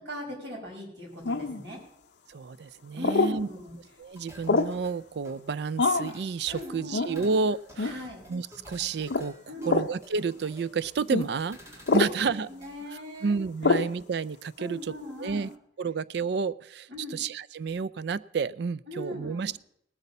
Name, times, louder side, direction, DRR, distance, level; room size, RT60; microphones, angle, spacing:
voice 1, 0.0-1.8 3.0-3.8 6.5-7.4 7.8-8.2 9.5-9.8 12.0-13.4 13.6-13.8 14.6-15.5 16.9-17.2 18.9-19.5, left 1 dB, 85° right, -2 dB, 5.6 m, -40 dB
sound 1, 1.3-1.6 3.0-3.4 4.5-4.8 5.8-6.1 6.9-7.1 7.8-8.0 9.1-9.3 9.7-9.9 11.1-11.3 11.9-12.2 13.6-13.9, left 3 dB, 75° left, 0.7 m, -25 dB
voice 2, 2.3-3.5 4.0-9.3 9.6-12.5 13.2-15.5 15.8-19.6, right 5 dB, 70° right, 18 dB, 0.4 m, -31 dB
sound 2, 4.2-12.7, equal, 15° right, 2.0 m, -51 dB
18.5 x 8.3 x 5.4 m, 0.73 s
head